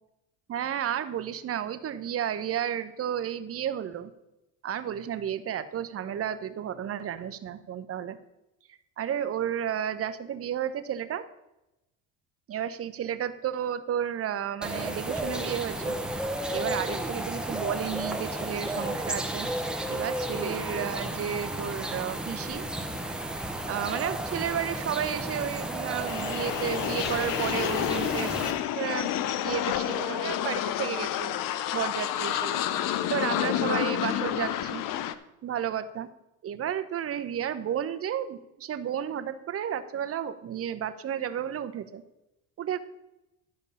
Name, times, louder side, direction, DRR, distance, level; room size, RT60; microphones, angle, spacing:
voice 1, 0.5-4.1 4.6-8.2 9.0-11.3 12.5-16.0 16.5-19.5 19.9-22.6 23.7-28.3 28.7-29.1 29.4-31.4 31.7-32.6 33.1-34.8 35.4-36.1 36.4-42.0 42.6-42.8, right 9 dB, 40° right, 11 dB, 0.8 m, -32 dB
sound 1, 14.6-28.5, right 1 dB, ahead, 0.9 m, -33 dB
sound 2, 26.1-35.1, left 11 dB, 60° left, 0.7 m, -29 dB
11.5 x 5.2 x 5.5 m, 0.93 s
supercardioid pair, 100°, 37 cm